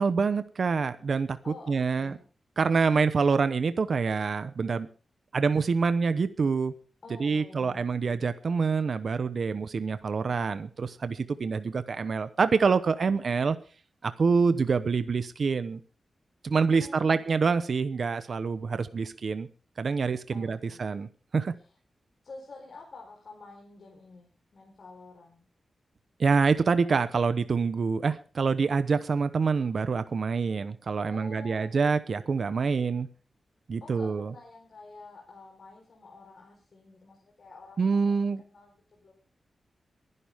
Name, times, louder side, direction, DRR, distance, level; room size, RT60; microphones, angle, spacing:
voice 1, 0.0-1.4 1.7-2.2 2.6-4.9 5.3-6.7 7.2-13.6 14.0-15.8 16.4-19.5 19.8-21.5 26.2-33.1 33.7-34.3 37.8-38.4, right 5 dB, 55° right, 12 dB, 0.9 m, -26 dB
voice 2, 1.4-2.3 7.0-8.0 14.3-14.6 16.7-17.2 20.3-20.8 21.6-21.7 22.2-25.5 31.0-32.0 33.8-38.1 38.5-39.1, left 3 dB, 50° left, 0 dB, 4.2 m, -49 dB
22.5 x 11.0 x 3.6 m, 0.36 s
wide cardioid pair, 155°, 0 cm